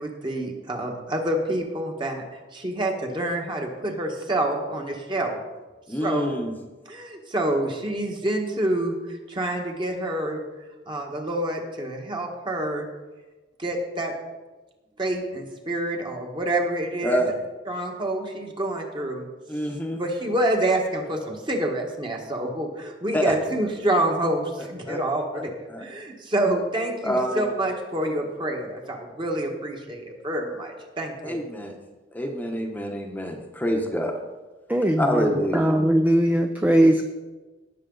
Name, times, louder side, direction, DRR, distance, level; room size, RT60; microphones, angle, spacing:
voice 1, 0.0-2.2 2.5-5.4 6.0-6.4 6.9-9.0 9.3-10.4 10.9-12.9 13.6-14.1 15.0-17.2 17.7-19.3 20.0-31.4, right 1 dB, 25° right, 1 dB, 1.6 m, -27 dB
voice 2, 5.9-6.5 17.0-17.3 19.5-20.0 23.1-23.3 24.9-25.0 25.7-25.8 27.0-27.5 31.2-31.7 32.1-34.1 35.0-35.7, equal, 10° left, 2 dB, 1.0 m, -26 dB
voice 3, 34.7-37.0, right 1 dB, 10° right, 5 dB, 0.5 m, -20 dB
17.5 x 6.7 x 4.0 m, 1.2 s
head